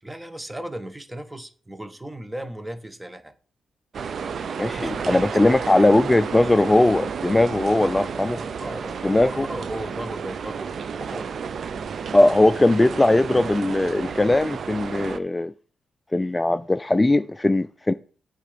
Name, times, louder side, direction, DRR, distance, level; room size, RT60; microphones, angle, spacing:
voice 1, 0.0-3.3 4.7-5.7 7.8-11.3, right 1 dB, 15° right, 1.0 m, -36 dB
sound 1, 3.9-15.2, right 6 dB, 60° right, 0.5 m, -32 dB
voice 2, 4.6-8.4 9.0-9.5 12.1-15.5 16.1-17.9, left 2 dB, 15° left, 0.3 m, -19 dB
8.2 x 3.8 x 6.7 m
cardioid pair, 75°, 0 cm